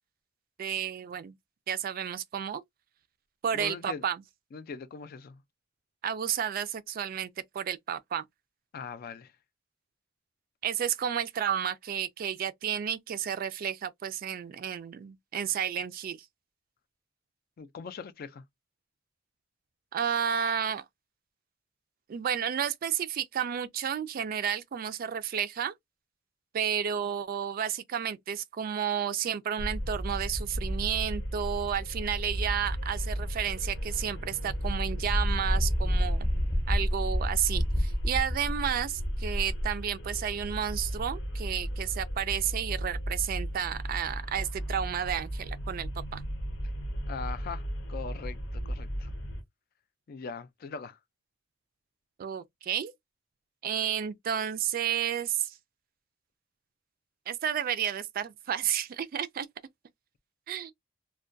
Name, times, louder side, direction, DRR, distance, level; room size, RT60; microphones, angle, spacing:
voice 1, 0.6-1.4 1.7-2.6 3.4-4.2 6.0-8.2 10.6-16.2 19.9-20.8 22.1-25.7 26.5-36.3 36.7-46.2 52.2-52.9 53.6-55.5 57.3-59.5 60.5-60.7, right 8 dB, 50° right, 0.3 m, -31 dB
voice 2, 3.5-4.0 4.5-5.4 8.7-9.3 17.6-18.4 47.1-49.1 50.1-51.0, left 5 dB, 50° left, 0.4 m, -41 dB
sound 1, 29.6-49.4, equal, 70° left, 0.7 m, -35 dB
Wind, 34.5-39.8, equal, 25° left, 0.7 m, -29 dB
2.2 x 2.2 x 2.5 m
head